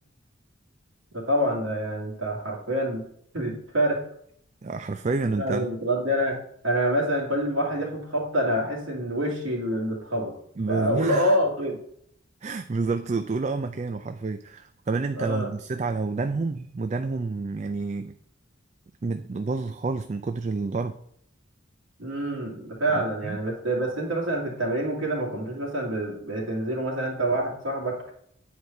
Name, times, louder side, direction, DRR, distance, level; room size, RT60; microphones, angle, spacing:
voice 1, 1.1-3.1 3.3-4.0 5.4-6.4 6.6-10.3 10.7-11.8 15.2-15.5 22.0-28.1, right 1 dB, 80° right, -3 dB, 2.1 m, -26 dB
voice 2, 4.6-5.7 10.6-11.4 12.4-18.2 19.0-21.0 22.9-23.4, right 3 dB, 35° right, 8 dB, 0.4 m, -29 dB
9.2 x 4.7 x 5.4 m, 0.69 s
head